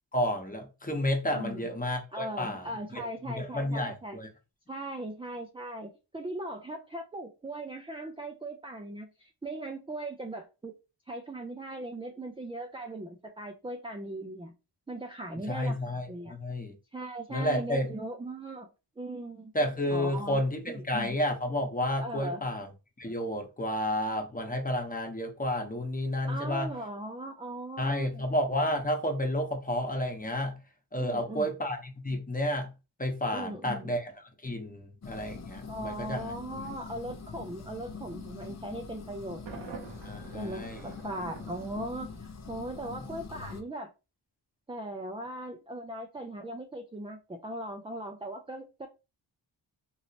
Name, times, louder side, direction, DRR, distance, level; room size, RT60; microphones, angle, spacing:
voice 1, 0.1-2.7 3.2-4.3 15.5-16.7 17.3-17.9 19.5-22.7 23.0-26.7 27.8-30.5 30.9-32.7 33.0-34.1 34.4-36.3 40.0-40.9, left 1 dB, 20° left, 1.0 m, -31 dB
voice 2, 1.3-1.7 2.1-4.2 4.7-10.7 11.1-14.5 14.9-16.3 16.9-18.7 19.0-19.5 19.9-21.2 22.0-22.5 26.3-28.2 31.0-31.5 33.3-33.9 35.7-39.9 40.3-43.9 44.7-48.9, right 1 dB, 15° right, 0.4 m, -39 dB
sound 1, 35.0-43.6, left 5 dB, 35° left, 0.6 m, -44 dB
Thunder, 39.5-42.4, right 5 dB, 75° right, 0.9 m, -47 dB
3.0 x 2.8 x 2.8 m
cardioid pair, 65°, 45 cm